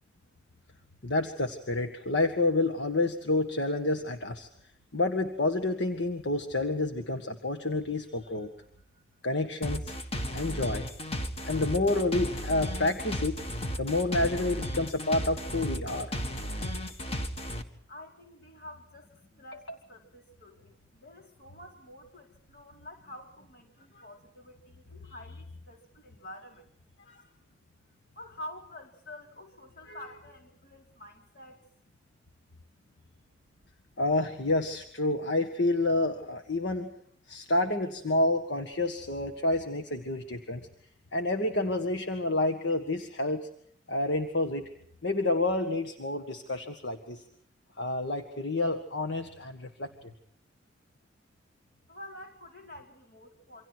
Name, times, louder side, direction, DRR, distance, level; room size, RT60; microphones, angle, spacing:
voice 1, 1.0-4.5 4.9-8.5 9.2-9.9 10.3-10.9 11.4-13.4 13.8-16.1 19.5-19.6 27.1-27.2 29.9-30.0 34.0-36.9 37.3-40.7 41.1-43.5 43.9-44.7 45.0-47.2 47.8-50.1, left 2 dB, 70° left, 6 dB, 1.7 m, -29 dB
sound 1, 9.6-17.6, equal, 35° left, 1.8 m, -34 dB
voice 2, 17.9-26.7 28.1-31.6 51.9-53.7, left 1 dB, 55° left, 1 dB, 5.0 m, -48 dB
28.0 x 25.5 x 4.6 m, 0.66 s
head